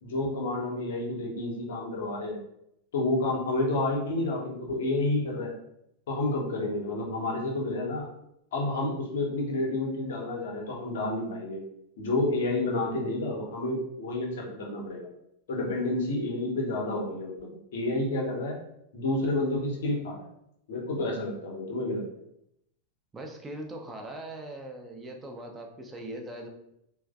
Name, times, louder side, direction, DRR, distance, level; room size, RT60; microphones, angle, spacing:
voice 1, 0.0-2.4 2.9-5.5 6.1-8.1 8.5-11.6 12.0-15.1 15.5-18.6 18.9-20.3 20.7-22.0, left 2 dB, 60° left, 0 dB, 0.7 m, -30 dB
voice 2, 23.1-26.5, right 1 dB, 15° right, 2 dB, 0.5 m, -40 dB
3.1 x 2.0 x 2.3 m, 0.77 s
figure-of-eight pair, 90°, 0 cm